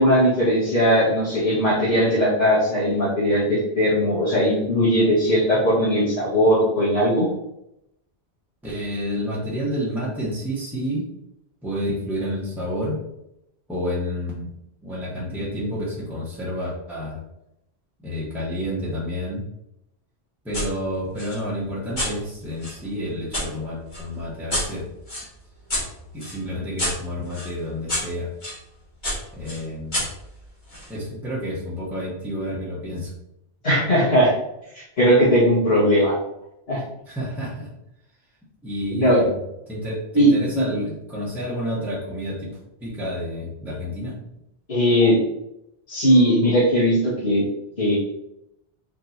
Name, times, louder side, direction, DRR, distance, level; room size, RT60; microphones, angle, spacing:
voice 1, 0.0-7.3 33.6-34.3 34.7-36.2 36.7-36.8 38.9-39.3 40.1-40.6 44.7-45.2 45.9-47.4 47.8-48.0, equal, 70° left, -13 dB, 1.9 m, -19 dB
voice 2, 8.6-11.1 11.6-13.0 13.7-14.5 14.8-17.2 18.0-19.5 20.4-24.9 26.1-28.3 29.3-30.0 30.9-33.1 37.1-37.7 38.6-39.4 39.7-44.2, equal, ahead, -7 dB, 0.9 m, -29 dB
sound 1, 20.5-20.7 21.2-23.5 23.9-28.6 29.0-30.9, left 1 dB, 45° left, 1.6 m, -30 dB
4.3 x 3.1 x 2.7 m, 0.83 s
omnidirectional pair, 1.1 m